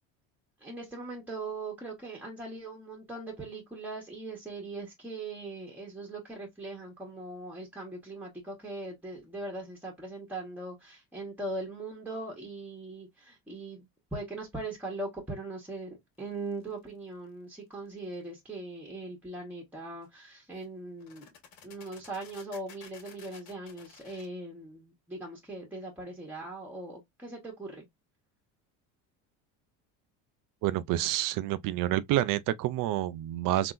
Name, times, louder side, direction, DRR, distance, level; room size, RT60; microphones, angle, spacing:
voice 1, 0.6-21.3 21.6-27.8, right 2 dB, 5° right, 1.4 m, -40 dB
sound 1, 16.5-16.8 20.0-20.1 20.6-20.7 21.0-24.3, left 7 dB, 65° left, 1.8 m, -53 dB
voice 2, 30.6-33.7, right 14 dB, 55° right, 0.5 m, -28 dB
3.7 x 2.9 x 2.5 m
cardioid pair, 115°, 39 cm